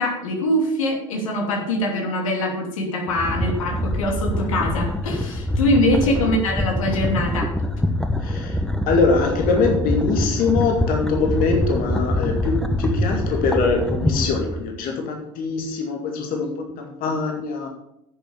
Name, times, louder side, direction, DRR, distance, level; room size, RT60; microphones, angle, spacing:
voice 1, 0.0-7.5, left 1 dB, 85° left, 1 dB, 2.8 m, -23 dB
sound 1, 3.1-14.6, left 1 dB, 5° left, 1.5 m, -24 dB
voice 2, 8.2-17.7, left 4 dB, 60° left, 2 dB, 2.2 m, -23 dB
10.5 x 6.9 x 7.0 m, 0.82 s
hypercardioid pair, 75°, 17 cm